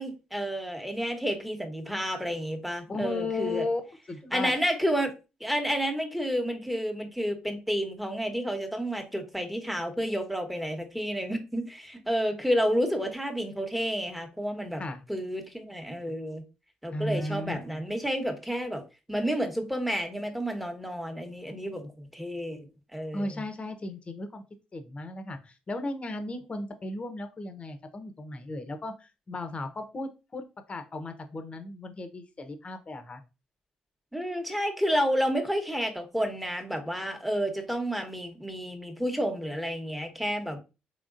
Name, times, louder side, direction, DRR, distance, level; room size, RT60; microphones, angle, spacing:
voice 1, 0.0-3.6 4.3-5.1 5.4-14.8 15.1-16.4 16.8-18.8 19.1-22.6 22.9-23.3 34.1-40.6, equal, ahead, 1.1 m, -30 dB
voice 2, 2.9-4.5 14.8-15.0 16.9-17.8 23.1-24.4 24.7-33.2, left 2 dB, 35° left, 0.8 m, -35 dB
3.7 x 3.5 x 2.5 m
supercardioid pair, 60°, 3 cm